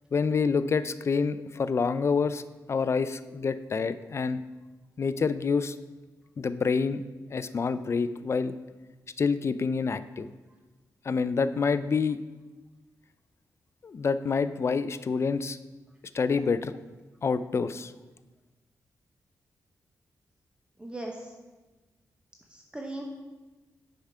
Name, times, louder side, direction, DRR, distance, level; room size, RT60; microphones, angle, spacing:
voice 1, 0.1-2.4 2.7-4.4 5.0-5.7 6.4-7.0 7.3-8.5 9.2-10.3 11.0-12.2 13.8-15.6 16.1-16.7 17.2-17.9, left 5 dB, 40° left, 13 dB, 0.3 m, -27 dB
voice 2, 20.8-21.3 22.5-23.0, right 1 dB, 15° right, 1 dB, 0.8 m, -38 dB
7.0 x 4.8 x 5.5 m, 1.2 s
cardioid pair, 80°, 7 cm